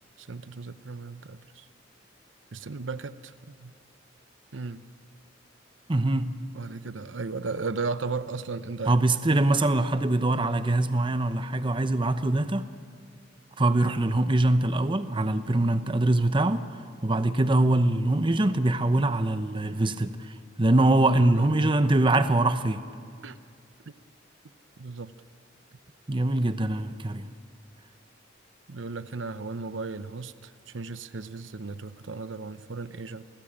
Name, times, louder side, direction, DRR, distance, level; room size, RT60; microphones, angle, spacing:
voice 1, 0.2-1.7 2.5-3.7 4.5-4.8 6.5-9.0 21.1-21.5 23.2-23.4 23.9-24.0 24.8-25.1 28.7-33.2, right 4 dB, 85° right, 0.8 m, -35 dB
voice 2, 5.9-6.3 8.9-12.7 13.6-16.6 17.0-20.2 20.6-22.8 26.1-27.3, right 2 dB, 25° right, 0.8 m, -23 dB
29.0 x 19.0 x 8.8 m
head